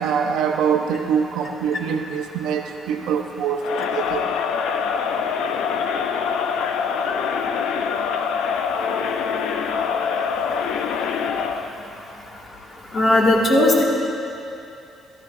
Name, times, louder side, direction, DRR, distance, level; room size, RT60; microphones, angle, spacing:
voice 1, 0.0-4.3, right 7 dB, 85° right, 4 dB, 0.7 m, -24 dB
Crowd, 3.6-11.7, left 6 dB, 85° left, 0.5 m, -24 dB
voice 2, 12.9-13.8, left 1 dB, 40° left, -3 dB, 2.0 m, -16 dB
14.0 x 13.0 x 2.7 m, 2.7 s
cardioid pair, 120°, 0 cm